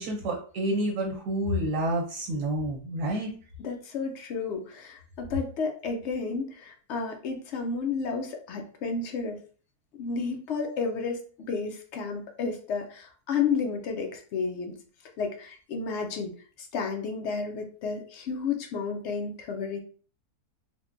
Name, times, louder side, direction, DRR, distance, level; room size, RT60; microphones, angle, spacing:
voice 1, 0.0-3.3, right 1 dB, 85° right, -1 dB, 1.4 m, -29 dB
voice 2, 3.6-9.4 10.0-11.2 11.5-14.7 15.2-16.3 16.6-19.8, left 5 dB, 75° left, 3 dB, 0.6 m, -31 dB
3.5 x 2.1 x 2.5 m, 0.41 s
omnidirectional pair, 1.7 m